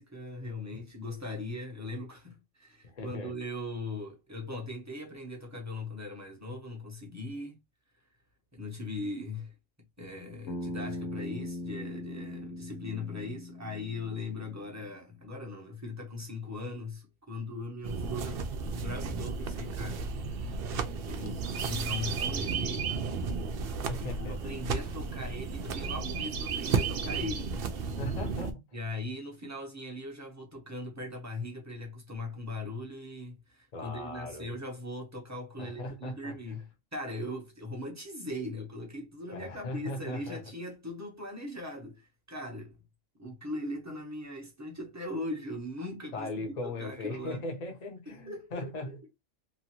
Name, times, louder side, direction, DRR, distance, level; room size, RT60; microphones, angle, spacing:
voice 1, 0.0-7.6 8.5-9.5 10.0-18.4 18.7-20.6 21.0-22.9 23.9-27.6 28.7-42.8 43.2-47.4 48.1-49.0, left 2 dB, 15° right, 0.7 m, -39 dB
voice 2, 2.8-3.3 23.9-24.5 28.0-28.6 33.7-34.5 35.6-36.3 39.3-40.4 46.1-49.0, left 2 dB, 35° left, 0.9 m, -38 dB
Bass guitar, 10.5-14.8, left 1 dB, 90° left, 1.0 m, -40 dB
sound 1, 17.8-28.5, right 5 dB, 60° right, 0.7 m, -33 dB
2.9 x 2.5 x 2.8 m
omnidirectional pair, 1.3 m